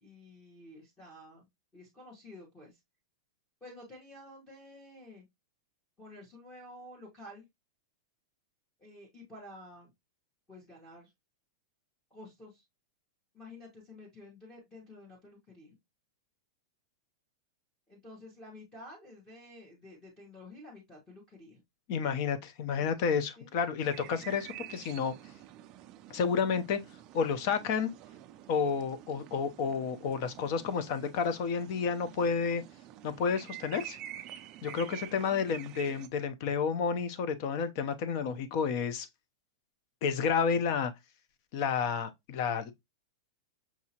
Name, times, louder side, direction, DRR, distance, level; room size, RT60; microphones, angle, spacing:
voice 1, 0.0-1.5 1.7-2.8 3.6-5.2 6.0-7.5 8.8-9.9 10.5-11.1 12.1-12.6 13.3-15.7 17.9-21.6 22.8-22.9 23.4-23.5 35.0-35.6, left 1 dB, 10° left, 1.1 m, -51 dB
voice 2, 21.9-25.1 26.1-26.8 27.1-27.9 28.5-32.6 33.0-34.0 34.6-39.1 40.0-40.9 41.5-42.7, left 6 dB, 35° left, 0.6 m, -30 dB
sound 1, 23.8-36.1, right 13 dB, 25° right, 0.3 m, -48 dB
5.9 x 2.7 x 2.8 m
supercardioid pair, 175°, 3 cm